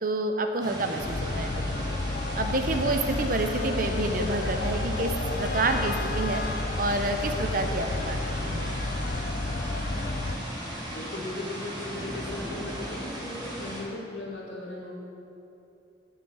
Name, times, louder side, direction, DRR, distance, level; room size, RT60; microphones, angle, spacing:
voice 1, 0.0-2.0 2.3-5.1 5.4-6.4 6.8-8.6, right 2 dB, 50° right, 6 dB, 0.7 m, -28 dB
sound 1, 0.6-13.8, equal, 25° right, 1.8 m, -37 dB
sound 2, 1.0-10.4, left 2 dB, 50° left, 0.4 m, -31 dB
sound 3, 1.1-13.1, right 1 dB, 75° right, 2.6 m, -46 dB
voice 2, 10.9-14.9, left 2 dB, 90° left, -3 dB, 2.1 m, -37 dB
7.1 x 6.7 x 8.0 m, 2.7 s
head